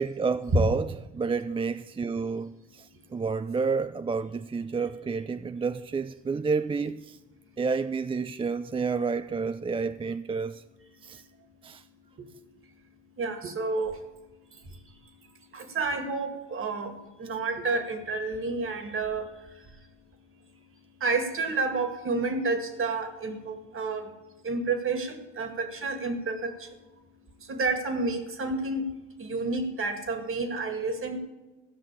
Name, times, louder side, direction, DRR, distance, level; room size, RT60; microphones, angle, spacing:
voice 1, 0.0-7.2 7.6-10.6 11.0-11.2 11.6-11.8, right 5 dB, 20° right, 0.3 m, -30 dB
voice 2, 13.2-13.9 15.5-16.9 17.2-19.2 21.0-24.0 24.4-26.5 27.5-28.8 29.2-31.2, right 3 dB, 45° right, 2.1 m, -29 dB
14.5 x 6.1 x 8.3 m
cardioid pair, 90°, 30 cm